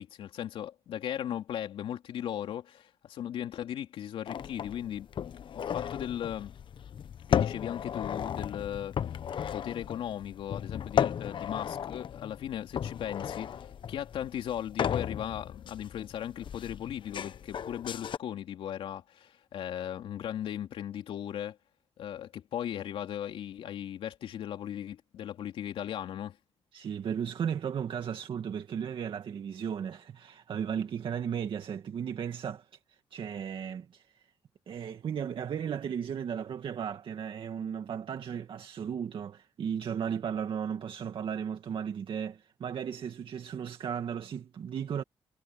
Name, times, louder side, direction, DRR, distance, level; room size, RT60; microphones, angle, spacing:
voice 1, 0.0-5.1 5.7-6.5 7.3-9.1 9.5-21.6 22.0-26.4, left 10 dB, 80° left, 3.5 m, -37 dB
sound 1, 4.3-18.2, left 8 dB, 65° left, 1.0 m, -35 dB
voice 2, 26.7-34.3 34.7-45.0, right 8 dB, 65° right, 2.1 m, -35 dB
cardioid pair, 65°, 9 cm